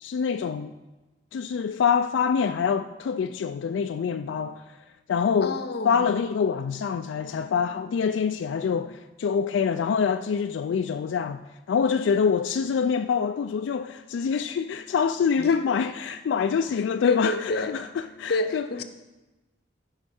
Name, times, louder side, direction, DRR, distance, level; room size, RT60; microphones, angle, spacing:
voice 1, 0.0-0.7 1.3-4.8 5.1-18.7, left 6 dB, 85° left, 0.3 m, -25 dB
voice 2, 5.4-6.3 15.4-15.5 17.0-17.8 18.3-18.8, left 2 dB, 60° left, 0.7 m, -29 dB
14.0 x 5.6 x 4.3 m
head